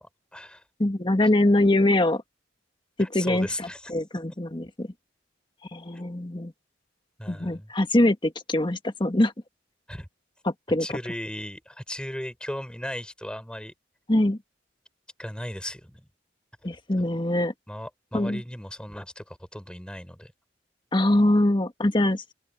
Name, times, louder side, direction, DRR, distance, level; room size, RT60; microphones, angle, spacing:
voice 1, 0.0-0.6 3.0-3.9 7.2-7.7 9.9-10.1 10.8-13.7 15.2-16.1 17.7-20.3, left 1 dB, 5° left, 5.4 m, -36 dB
voice 2, 0.8-2.2 3.0-4.9 5.7-6.5 7.3-9.3 10.4-10.9 14.1-14.4 16.6-17.5 18.1-18.4 20.9-22.3, left 1 dB, 25° left, 1.5 m, -23 dB
open air
head